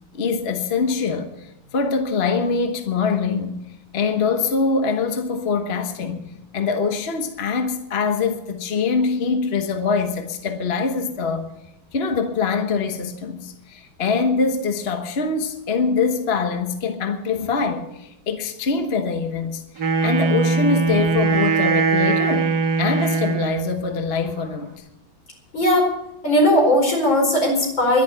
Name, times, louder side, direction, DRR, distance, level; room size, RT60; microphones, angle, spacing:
voice 1, 0.1-3.6 3.9-11.5 11.9-24.7 26.3-26.4, left 4 dB, 35° left, 1.2 m, -24 dB
Wind instrument woodwind instrument, 19.8-23.8, right 4 dB, 55° right, 2.0 m, -21 dB
voice 2, 25.5-25.9 26.2-28.0, left 1 dB, 70° left, 5.3 m, -18 dB
11.5 x 10.5 x 9.6 m
omnidirectional pair, 2.1 m